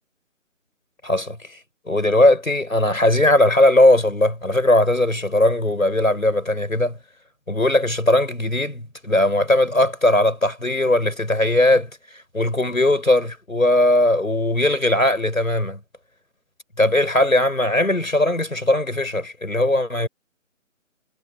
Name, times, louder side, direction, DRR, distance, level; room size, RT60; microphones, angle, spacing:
voice 1, 1.0-1.6 1.9-7.0 7.5-11.9 12.3-15.8 16.8-20.1, left 1 dB, 85° left, 5.8 m, -19 dB
figure-of-eight pair, 150°, 40 cm